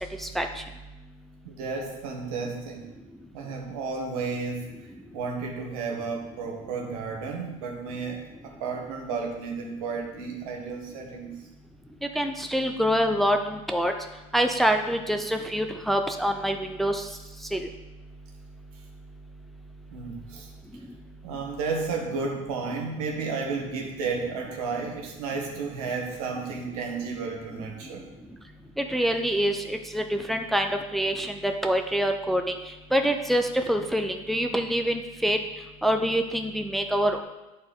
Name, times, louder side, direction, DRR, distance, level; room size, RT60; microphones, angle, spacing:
voice 1, 0.2-0.6 12.2-13.9 14.3-17.0 17.5-17.7 28.8-32.4 32.9-35.4 35.8-37.2, equal, ahead, 5 dB, 0.6 m, -25 dB
voice 2, 1.4-2.9 3.3-4.7 5.1-11.4 19.9-20.5 21.2-28.1, right 4 dB, 85° right, 1 dB, 1.4 m, -32 dB
9.4 x 4.3 x 3.8 m, 1.0 s
supercardioid pair, 100°, 18 cm